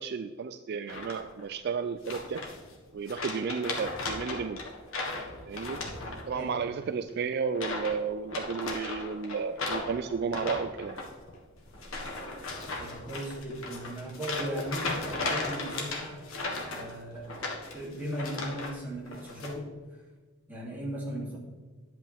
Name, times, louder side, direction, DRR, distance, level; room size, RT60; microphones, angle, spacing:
voice 1, 0.0-2.4 2.9-4.6 5.5-5.8 6.3-11.0, right 5 dB, 50° right, 10 dB, 0.3 m, -33 dB
sound 1, 0.9-1.4 2.1-2.8 3.1-6.5 6.8-7.1 7.5-8.0 8.2-18.8 19.1-19.5, left 3 dB, 65° left, 1.6 m, -36 dB
voice 2, 12.8-16.2 16.6-17.3 17.7-19.7 20.5-21.4, equal, 10° right, -6 dB, 2.8 m, -37 dB
10.5 x 8.4 x 3.5 m, 1.4 s
head